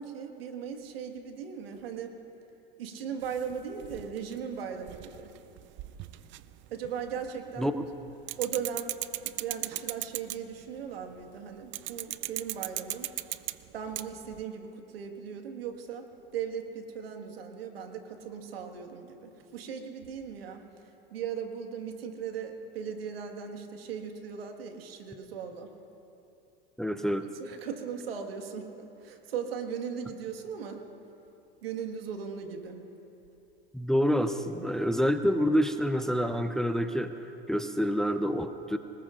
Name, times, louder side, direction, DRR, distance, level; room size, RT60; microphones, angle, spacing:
voice 1, 0.0-2.2 2.8-5.3 6.7-7.8 8.4-8.9 9.2-13.1 13.7-16.1 16.3-25.7 27.4-30.9 31.6-32.9, right 7 dB, 85° right, 4 dB, 1.8 m, -38 dB
sound 1, 3.2-7.4 7.6-10.6 11.7-14.4, right 16 dB, 40° right, 0.5 m, -38 dB
voice 2, 26.8-27.3 33.7-38.8, equal, ahead, 9 dB, 0.7 m, -27 dB
26.0 x 19.5 x 2.5 m, 2.8 s
hypercardioid pair, 95°, 29 cm